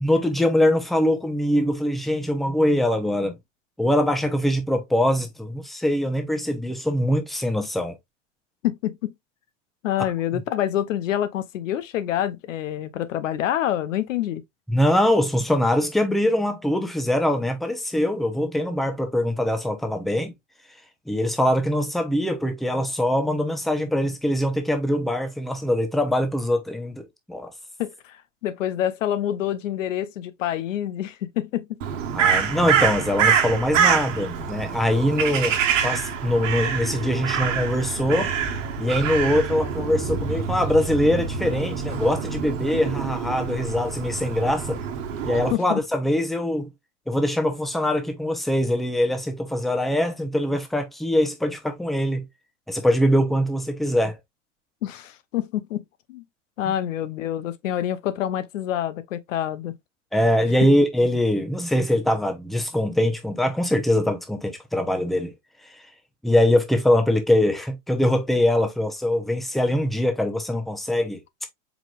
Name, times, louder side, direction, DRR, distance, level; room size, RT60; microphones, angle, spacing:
voice 1, 0.0-3.4 3.8-8.0 10.3-10.4 14.7-20.3 21.1-27.5 32.1-35.6 35.8-38.3 38.8-44.8 45.3-46.7 47.1-52.2 52.7-54.2 56.7-56.8 60.1-65.3 65.7-65.8 66.2-71.2, left 1 dB, ahead, 0.7 m, -23 dB
voice 2, 8.6-9.1 9.8-14.4 27.8-31.8 45.5-45.8 54.8-55.8 56.1-56.2 56.6-59.7, left 11 dB, 90° left, 0.7 m, -27 dB
Crow, 31.8-45.5, right 7 dB, 80° right, 1.2 m, -25 dB
4.7 x 3.7 x 2.4 m
supercardioid pair, 120°, 37 cm